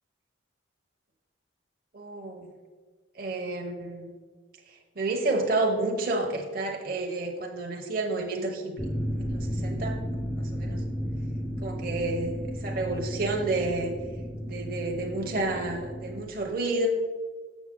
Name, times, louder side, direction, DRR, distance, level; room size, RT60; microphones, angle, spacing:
voice 1, 1.9-2.5 3.1-4.1 4.7-8.9 9.2-10.0 10.4-10.8 11.6-13.9 14.4-16.9, right 2 dB, 45° right, 1 dB, 0.9 m, -30 dB
sound 1, 8.8-16.2, equal, 5° left, 0.4 m, -33 dB
7.2 x 6.8 x 3.7 m, 1.4 s
head